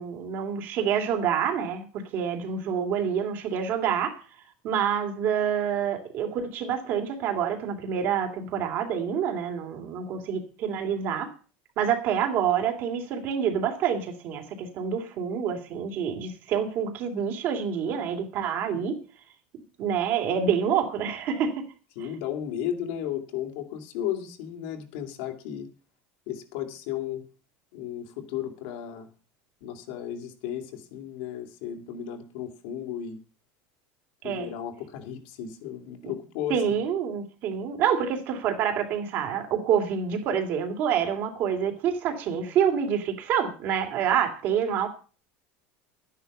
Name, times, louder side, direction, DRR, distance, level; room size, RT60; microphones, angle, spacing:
voice 1, 0.0-1.8 2.1-4.2 4.6-11.3 11.8-19.0 19.8-21.5 34.2-34.5 36.0-36.1 36.5-44.9, right 8 dB, 45° right, 4 dB, 2.6 m, -27 dB
voice 2, 21.9-25.7 26.3-27.2 27.7-29.1 29.6-33.2 34.2-36.8, left 10 dB, 70° left, 4 dB, 2.7 m, -34 dB
12.0 x 10.0 x 5.4 m, 0.37 s
cardioid pair, 170°, 5 cm